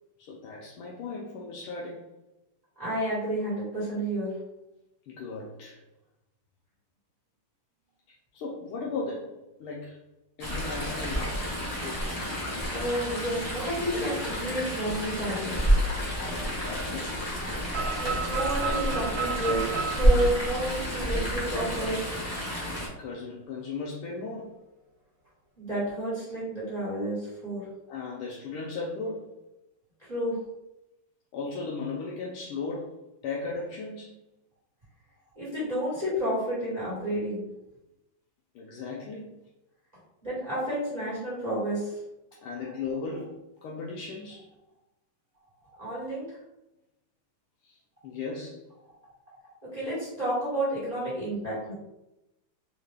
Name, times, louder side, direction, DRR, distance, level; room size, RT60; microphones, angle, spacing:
voice 1, 0.2-2.1 5.1-5.8 8.3-10.0 10.4-11.7 16.4-17.3 23.0-24.5 27.9-29.3 31.3-34.1 38.5-39.4 42.4-44.5 47.6-47.8 48.0-48.6, left 4 dB, 85° left, -3 dB, 1.5 m, -36 dB
voice 2, 2.8-4.3 12.7-15.7 18.0-22.1 25.6-27.7 30.0-30.4 35.4-37.5 40.2-42.0 45.8-46.4 49.7-51.7, right 1 dB, 25° right, -8 dB, 1.0 m, -30 dB
Chatter / Stream, 10.4-22.9, equal, 45° left, 0.4 m, -29 dB
sound 1, 17.7-21.6, right 5 dB, 60° right, 0.9 m, -33 dB
3.8 x 2.1 x 3.3 m, 0.92 s
omnidirectional pair, 2.3 m